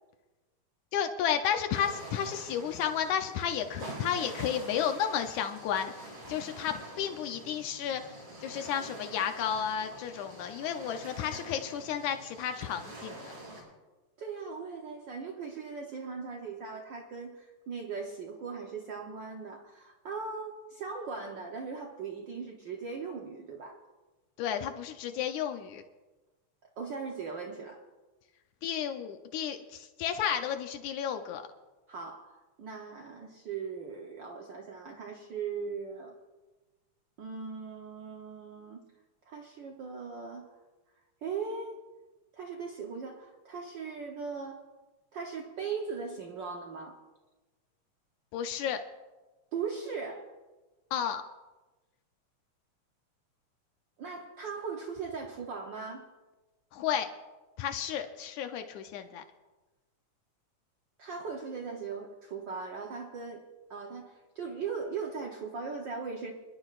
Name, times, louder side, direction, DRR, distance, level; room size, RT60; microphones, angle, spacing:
voice 1, 0.9-5.9 6.3-8.2 8.4-13.2 24.4-25.8 28.6-31.4 48.3-48.8 50.9-51.2 56.7-57.1 57.6-59.2, left 9 dB, 80° left, 6 dB, 2.0 m, -32 dB
sound 1, 1.7-13.6, right 1 dB, 55° right, 5.9 m, -46 dB
voice 2, 14.2-23.8 26.8-27.8 31.9-36.1 37.2-38.8 39.3-40.5 41.2-41.8 42.3-44.6 45.1-47.0 49.5-50.3 54.0-56.1 61.0-63.4 63.7-66.3, right 5 dB, 85° right, 1 dB, 1.0 m, -39 dB
27.0 x 11.5 x 2.4 m, 1.2 s
omnidirectional pair, 3.4 m